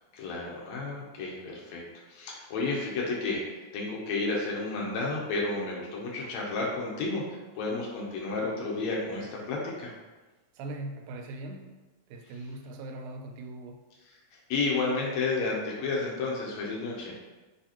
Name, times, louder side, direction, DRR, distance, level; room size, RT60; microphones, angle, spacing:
voice 1, 0.1-1.8 2.1-3.4 3.7-7.2 7.6-9.9 14.5-17.1, left 3 dB, 75° left, -3 dB, 1.9 m, -31 dB
voice 2, 10.6-11.8 12.1-13.8, right 2 dB, 85° right, 4 dB, 2.0 m, -40 dB
6.4 x 2.8 x 2.9 m, 1.2 s
omnidirectional pair, 3.4 m